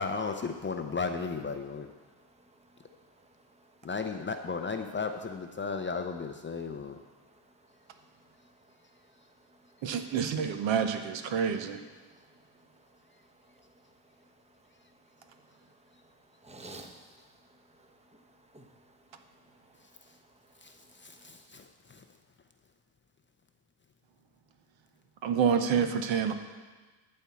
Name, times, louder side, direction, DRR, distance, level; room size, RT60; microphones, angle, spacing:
voice 1, 0.0-1.9 3.8-7.0 19.8-20.2 20.6-22.0, left 4 dB, 25° left, 5 dB, 0.5 m, -35 dB
voice 2, 2.4-3.8 7.3-7.8 8.4-9.9 12.1-13.0 13.4-13.9 14.2-14.3 14.6-14.7 15.2-16.1 16.4-20.4 20.7-21.3, right 2 dB, 15° right, 5 dB, 0.9 m, -56 dB
voice 3, 9.8-11.8 25.2-26.3, right 7 dB, 65° right, 8 dB, 1.0 m, -28 dB
12.0 x 4.4 x 8.3 m, 1.3 s
cardioid pair, 125°, 48 cm